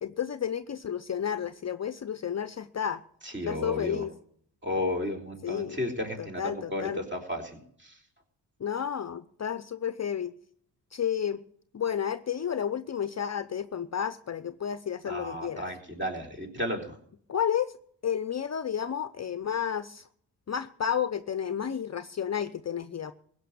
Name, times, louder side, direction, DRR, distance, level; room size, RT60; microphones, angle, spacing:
voice 1, 0.0-3.0 3.5-4.1 5.4-5.8 6.2-7.0 8.6-10.3 10.9-11.4 11.7-15.7 17.3-17.7 18.0-20.0 20.5-23.1, left 8 dB, 40° left, 13 dB, 0.7 m, -31 dB
voice 2, 3.2-4.1 4.6-7.9 15.1-16.9, left 1 dB, 25° right, 2 dB, 3.8 m, -33 dB
16.0 x 6.1 x 8.7 m, 0.62 s
cardioid pair, 60°, 43 cm